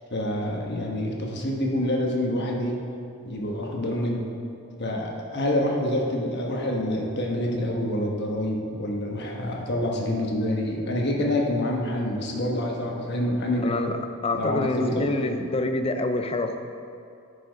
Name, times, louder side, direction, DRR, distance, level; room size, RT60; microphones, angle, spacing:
voice 1, 0.1-2.8 3.2-4.2 4.8-13.7 14.3-15.3, left 1 dB, 55° left, -1 dB, 1.2 m, -27 dB
voice 2, 13.6-16.6, left 2 dB, 30° left, 7 dB, 0.5 m, -27 dB
9.9 x 5.2 x 5.1 m, 2.6 s
head